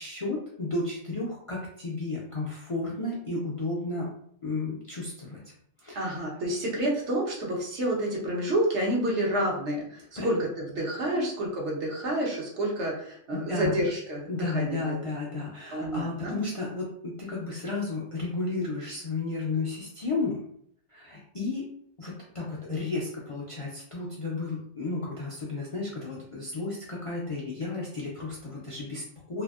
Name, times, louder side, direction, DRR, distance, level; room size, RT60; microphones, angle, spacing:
voice 1, 0.0-4.1 4.4-5.4 5.8-6.2 10.2-10.3 11.1-11.2 13.3-13.8 14.3-20.4 20.9-21.7 22.0-29.4, left 3 dB, 50° left, -4 dB, 0.4 m, -33 dB
voice 2, 5.9-15.1 15.7-16.4, right 1 dB, 75° right, -3 dB, 1.1 m, -29 dB
2.7 x 2.5 x 2.3 m, 0.65 s
omnidirectional pair, 1.2 m